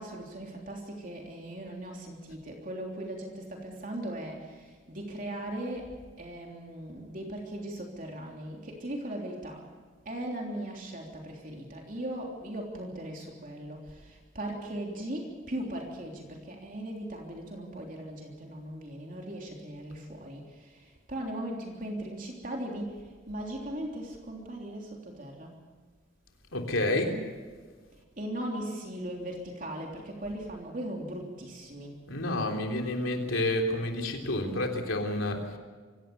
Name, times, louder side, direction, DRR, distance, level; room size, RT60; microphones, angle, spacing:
voice 1, 0.0-9.6 10.0-25.6 28.2-32.0, right 1 dB, 40° right, 0 dB, 3.3 m, -38 dB
voice 2, 26.5-27.2 32.1-35.4, left 1 dB, 85° left, 2 dB, 3.4 m, -29 dB
25.0 x 17.0 x 6.9 m, 1.5 s
head